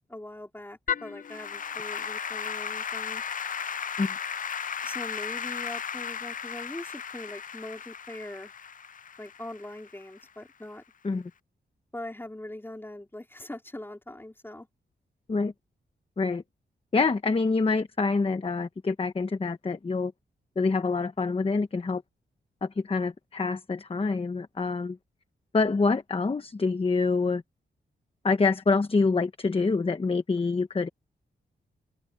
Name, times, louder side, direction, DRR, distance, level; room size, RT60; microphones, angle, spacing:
voice 1, 0.1-3.2 4.8-8.5 9.2-10.8 11.9-14.7, left 1 dB, 10° left, 4.2 m, -41 dB
Applause / Keyboard (musical), 0.9-10.2, left 7 dB, 45° left, 0.5 m, -35 dB
voice 2, 16.9-20.1 20.6-22.0 22.6-25.0 25.5-27.4 28.2-30.9, left 4 dB, 30° left, 1.1 m, -26 dB
wide cardioid pair, 100°, 19 cm